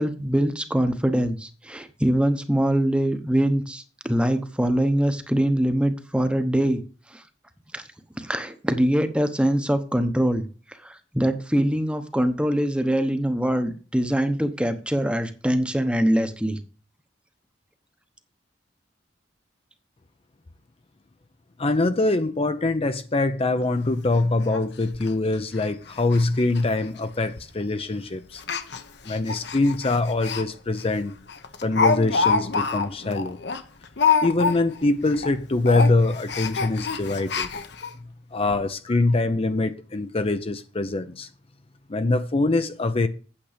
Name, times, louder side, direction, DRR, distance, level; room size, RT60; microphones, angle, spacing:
voice 1, 0.0-6.8 7.1-7.2 7.7-7.8 8.2-10.5 10.8-16.6, right 1 dB, 5° right, 0.9 m, -23 dB
voice 2, 21.6-28.4 29.0-31.1 31.6-33.4 34.2-37.5 38.3-41.3 41.9-43.1, left 2 dB, 30° left, 0.6 m, -23 dB
Speech, 23.6-23.7 24.1-24.2 24.5-24.6 24.9-25.1 25.5-25.7 26.0-26.2 26.5-26.6 27.4-27.6 28.4-30.4 30.8-30.9 31.3-34.8 35.1-35.3 35.6-37.9 38.5-38.6 38.9-39.0, left 5 dB, 65° left, 1.1 m, -26 dB
8.8 x 7.7 x 5.1 m
head